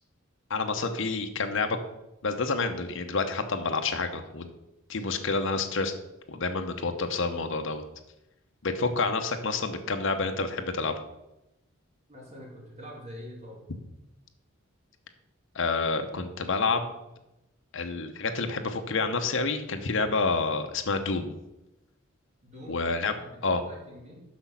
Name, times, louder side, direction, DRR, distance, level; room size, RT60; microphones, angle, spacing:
voice 1, 0.5-1.8 2.2-4.5 4.9-5.9 6.3-7.8 8.6-10.9 15.5-17.0 17.7-21.4 22.7-23.1 23.4-23.6, left 4 dB, 60° left, 6 dB, 0.8 m, -28 dB
voice 2, 12.1-13.6 22.4-22.8 23.1-24.2, equal, 30° right, -3 dB, 2.3 m, -45 dB
6.2 x 6.0 x 5.7 m, 0.92 s
head